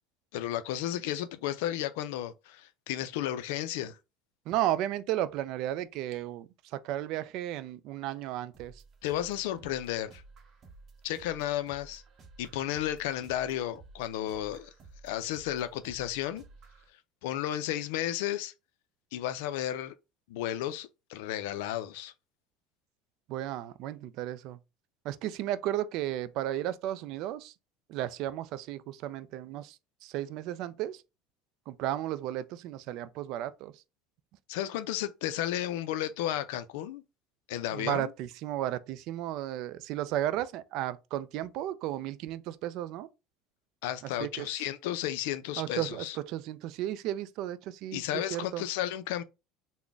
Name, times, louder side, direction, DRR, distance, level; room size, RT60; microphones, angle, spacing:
voice 1, 0.3-4.0 9.0-10.2 11.0-12.0 12.4-14.7 15.0-16.4 17.2-18.5 19.1-20.0 20.3-22.1 34.5-37.0 37.5-38.1 43.8-46.2 47.9-49.2, left 12 dB, 80° left, 0.3 m, -33 dB
voice 2, 4.5-6.5 6.8-8.7 23.3-24.6 25.0-27.5 27.9-29.8 30.0-31.0 31.7-33.7 37.7-43.1 44.2-44.5 45.6-48.6, right 13 dB, 65° right, 0.3 m, -34 dB
sound 1, 8.5-16.9, right 3 dB, 40° right, 0.7 m, -54 dB
3.8 x 2.1 x 3.4 m
supercardioid pair, 105°, 0 cm